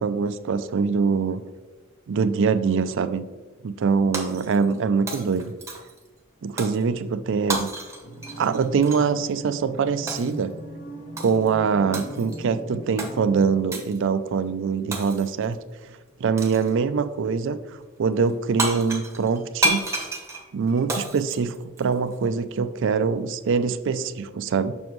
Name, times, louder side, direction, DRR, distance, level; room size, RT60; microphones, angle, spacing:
voice 1, 0.0-1.4 2.1-3.2 3.6-5.5 6.4-7.7 8.4-10.5 11.2-15.6 16.2-17.6 18.0-19.9 20.5-24.7, right 5 dB, 60° right, 12 dB, 0.4 m, -23 dB
Shatter, 4.1-4.8 5.1-6.0 6.6-6.8 7.5-9.1 10.1-10.4 11.2-11.5 11.9-12.4 13.0-13.1 13.7-14.0 14.9-15.4 16.4-16.7 18.3-18.4 18.6-22.2, right 2 dB, 15° right, 0.9 m, -30 dB
sound 1, 8.0-13.6, equal, 35° left, 1.0 m, -39 dB
7.0 x 6.1 x 3.1 m, 1.2 s
head